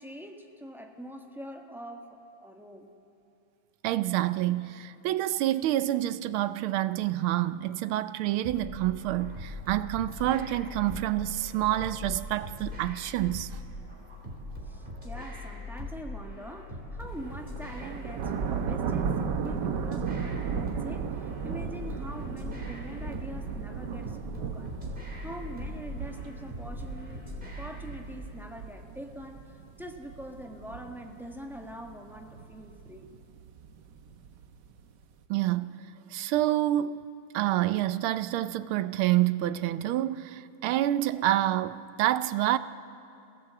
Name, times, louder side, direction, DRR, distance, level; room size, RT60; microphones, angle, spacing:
voice 1, 0.0-2.9 14.6-24.8 25.2-27.2 27.6-33.1, equal, ahead, 1.2 m, -44 dB
voice 2, 3.8-13.6 35.3-37.0 37.3-42.6, right 14 dB, 90° right, 1.5 m, -28 dB
sound 1, 8.4-28.0, left 1 dB, 25° right, 3.4 m, -41 dB
sound 2, 17.1-35.0, right 7 dB, 60° right, 1.4 m, -36 dB
26.5 x 16.5 x 7.7 m
omnidirectional pair, 2.3 m